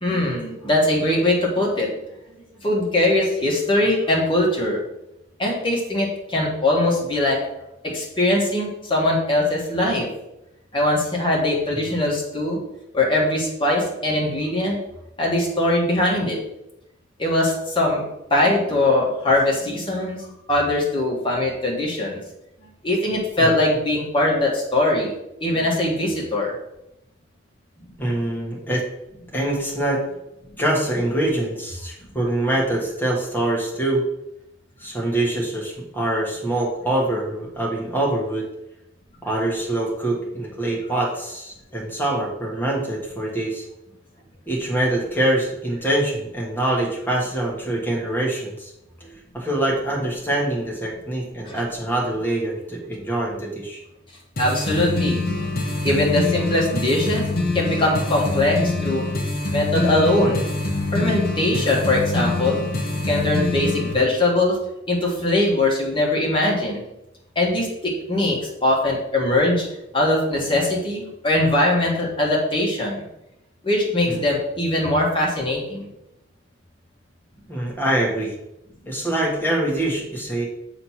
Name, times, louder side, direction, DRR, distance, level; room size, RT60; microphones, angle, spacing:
voice 1, 0.0-2.0 2.6-4.8 5.4-7.4 7.8-10.1 10.7-12.6 12.9-14.8 15.2-16.4 17.2-18.0 18.3-20.2 20.5-22.2 22.8-25.1 25.4-26.5 51.4-51.6 54.4-55.2 55.8-57.2 57.5-59.0 59.5-60.4 60.9-62.7 63.1-64.6 64.9-66.8 67.3-69.7 69.9-73.0 73.6-75.9, left 1 dB, 25° left, -3 dB, 1.6 m, -21 dB
voice 2, 28.0-28.8 29.3-30.0 30.6-34.0 34.8-38.4 39.2-43.6 44.5-48.7 49.3-53.8 63.9-64.1 74.0-74.2 77.5-78.3 78.9-80.4, right 1 dB, 10° left, -3 dB, 1.5 m, -24 dB
sound 1, 54.4-63.9, left 2 dB, 50° left, 0.9 m, -25 dB
6.6 x 3.1 x 5.7 m, 0.87 s
head